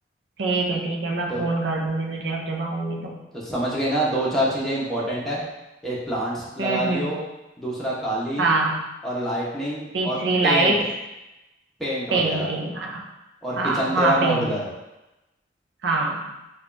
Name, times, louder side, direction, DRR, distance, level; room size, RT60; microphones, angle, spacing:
voice 1, 0.4-3.2 6.6-7.1 8.4-8.8 9.9-10.9 12.1-13.0 13.6-14.5 15.8-16.3, right 3 dB, 70° right, 0 dB, 0.5 m, -24 dB
voice 2, 3.3-5.4 5.8-7.2 7.6-8.6 9.0-10.7 11.8-12.5 13.4-14.6, equal, ahead, -7 dB, 0.8 m, -26 dB
5.0 x 2.3 x 2.5 m, 0.99 s
head